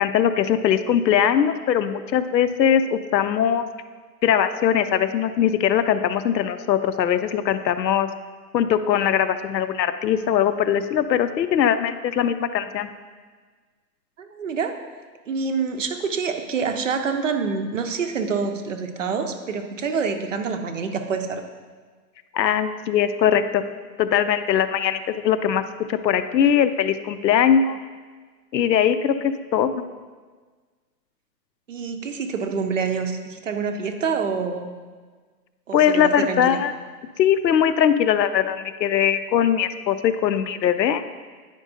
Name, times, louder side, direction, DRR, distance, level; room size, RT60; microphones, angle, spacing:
voice 1, 0.0-3.7 4.2-8.1 8.5-12.9 22.3-23.6 24.0-25.6 25.9-27.8 28.5-29.8 35.7-36.7 37.2-41.1, left 9 dB, 90° left, 11 dB, 0.6 m, -21 dB
voice 2, 14.2-14.8 15.3-21.4 31.7-34.7 35.7-36.6, right 5 dB, 50° right, 6 dB, 0.7 m, -26 dB
9.8 x 5.2 x 2.6 m, 1.5 s
hypercardioid pair, 170°, 50 cm